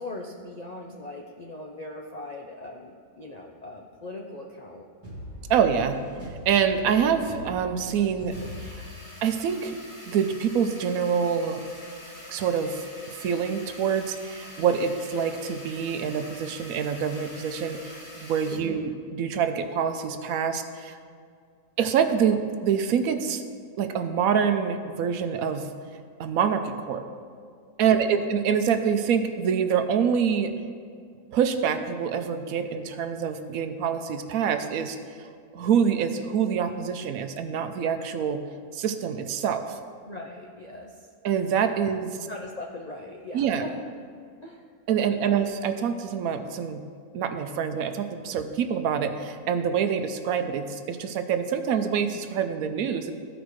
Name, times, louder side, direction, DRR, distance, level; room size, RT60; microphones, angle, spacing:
voice 1, 0.0-4.9 18.5-18.8 27.9-28.3 40.0-41.1 41.9-42.0 42.3-43.8 44.4-44.7 45.1-45.4, left 2 dB, 60° left, 0 dB, 0.4 m, -40 dB
sound 1, 5.0-9.5, left 1 dB, 20° right, 1.7 m, -42 dB
voice 2, 5.5-6.0 6.5-8.4 8.7-8.8 9.2-9.8 10.1-11.6 12.3-21.0 21.8-23.4 23.8-25.7 26.2-27.0 27.8-30.5 31.3-35.3 35.5-38.4 38.7-39.8 41.2-42.1 43.3-43.6 44.9-46.8 47.1-53.1, right 7 dB, 75° right, 8 dB, 1.0 m, -26 dB
sound 2, 8.3-18.6, left 1 dB, 25° left, 1.0 m, -45 dB
14.5 x 5.0 x 3.1 m, 2.2 s
omnidirectional pair, 1.5 m